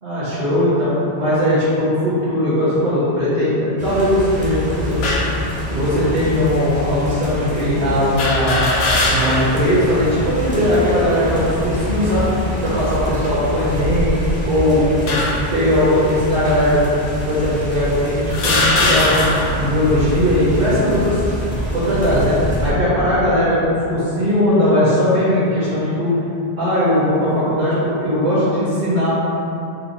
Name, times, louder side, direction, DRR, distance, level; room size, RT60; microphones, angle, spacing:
voice 1, 0.0-5.0 5.7-8.7 9.1-12.3 12.6-14.2 14.4-15.2 15.5-16.8 17.2-19.3 19.5-21.2 21.7-26.2 26.6-29.1, left 1 dB, 55° right, -12 dB, 1.3 m, -18 dB
sound 1, 3.8-22.7, equal, 10° right, 0.4 m, -26 dB
sound 2, 5.0-5.4 6.2-6.3 8.2-9.6 10.1-10.2 11.3-11.7 12.4-12.7 13.6-14.4 15.1-15.6 16.4-16.6 17.5-17.6 18.3-19.6, left 2 dB, 70° left, 0.8 m, -20 dB
4.1 x 2.1 x 4.1 m, 2.9 s
omnidirectional pair, 1.2 m